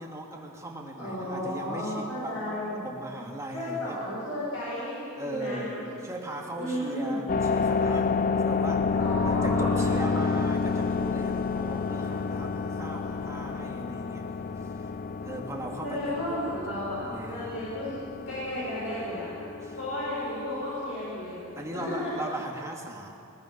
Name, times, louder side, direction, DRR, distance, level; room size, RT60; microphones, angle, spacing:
voice 1, 0.0-2.4 2.8-4.0 5.2-8.9 9.2-14.3 14.6-14.9 15.2-16.4 16.7-17.6 19.6-19.8 21.6-23.2, right 1 dB, 15° right, -1 dB, 2.3 m, -39 dB
voice 2, 1.0-2.9 3.5-5.8 6.5-7.2 8.9-10.3 15.8-18.0 18.3-19.3 19.8-21.4 21.7-22.1, left 1 dB, 70° left, -8 dB, 6.7 m, -33 dB
sound 1, 7.3-22.3, left 4 dB, 40° left, 0.5 m, -30 dB
21.0 x 18.5 x 6.7 m, 2.6 s
head